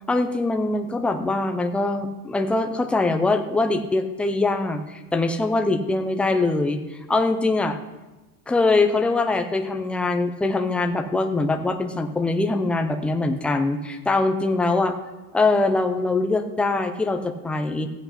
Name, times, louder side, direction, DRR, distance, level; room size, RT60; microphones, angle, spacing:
voice 1, 0.1-6.8 7.1-7.8 8.5-14.9 15.3-17.9, left 3 dB, 5° left, 6 dB, 0.4 m, -23 dB
15.0 x 8.1 x 5.6 m, 1.1 s
supercardioid pair, 140°, 44 cm